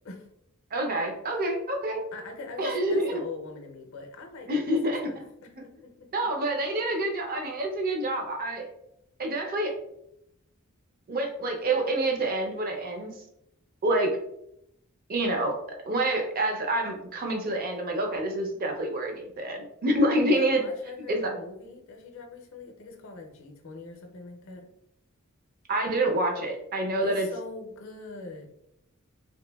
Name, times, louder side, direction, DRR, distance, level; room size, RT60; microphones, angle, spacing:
voice 1, 0.7-2.0 2.6-3.2 4.5-5.2 6.1-8.7 9.2-9.7 11.1-13.2 13.8-14.1 15.1-15.6 15.9-20.6 21.1-21.3 25.7-27.3, right 1 dB, 40° right, 2 dB, 0.5 m, -27 dB
voice 2, 2.1-6.1 20.3-24.7 27.0-28.5, left 3 dB, 65° left, 3 dB, 0.5 m, -43 dB
2.9 x 2.5 x 2.2 m, 0.78 s
head